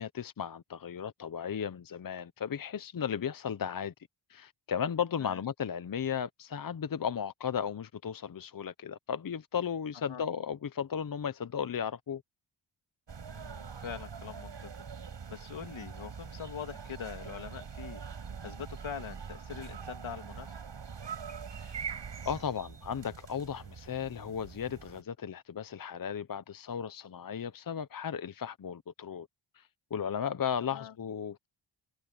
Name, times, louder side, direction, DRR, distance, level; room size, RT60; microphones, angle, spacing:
voice 1, 0.0-3.9 4.3-12.2 21.5-21.9 22.2-29.3 29.5-31.5, left 8 dB, 45° left, 0.9 m, -35 dB
sound 1, 13.1-25.0, right 6 dB, 65° right, 7.8 m, -43 dB
voice 2, 13.3-14.7 15.0-20.6 30.7-30.9, left 7 dB, 80° left, 3.2 m, -43 dB
cardioid pair, 80°, 46 cm